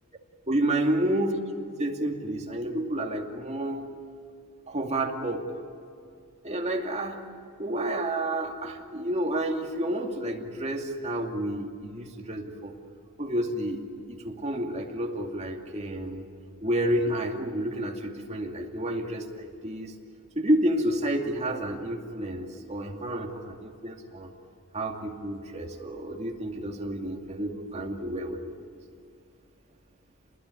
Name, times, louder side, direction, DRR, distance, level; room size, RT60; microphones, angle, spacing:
voice 1, 0.5-1.4 1.8-3.8 4.7-5.5 6.4-7.2 7.6-12.7 13.2-16.2 16.6-19.9 20.4-24.3 24.7-28.6, right 1 dB, 30° right, 2 dB, 2.5 m, -30 dB
28.5 x 20.5 x 9.8 m, 2.4 s
head